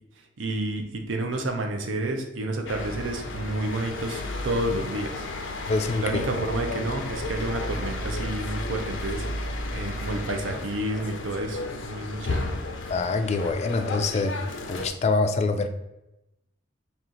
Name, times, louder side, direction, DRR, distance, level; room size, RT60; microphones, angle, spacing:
voice 1, 0.4-5.3 6.0-9.2 9.7-12.5, right 1 dB, 85° right, 4 dB, 0.6 m, -30 dB
sound 1, 2.7-14.9, left 2 dB, 80° left, 0.6 m, -33 dB
voice 2, 5.7-6.2 12.9-14.4 14.7-15.7, left 3 dB, 35° left, 7 dB, 0.3 m, -25 dB
4.3 x 2.4 x 3.8 m, 0.91 s
head